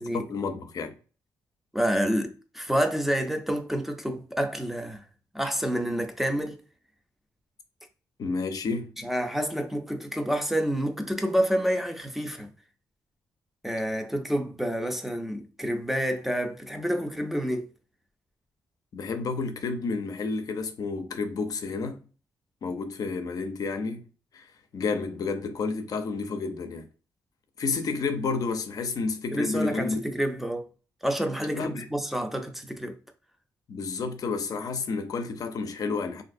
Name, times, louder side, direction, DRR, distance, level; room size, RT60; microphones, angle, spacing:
voice 1, 0.1-0.9 8.2-8.9 18.9-22.0 22.6-24.1 24.3-26.9 27.6-30.0 31.5-31.9 33.7-36.2, left 4 dB, 60° left, 0.5 m, -30 dB
voice 2, 1.7-5.0 5.3-6.6 9.0-12.5 13.6-17.7 29.3-30.7 31.0-33.0, equal, 5° right, 0.6 m, -28 dB
3.1 x 2.6 x 2.6 m
cardioid pair, 75°, 7 cm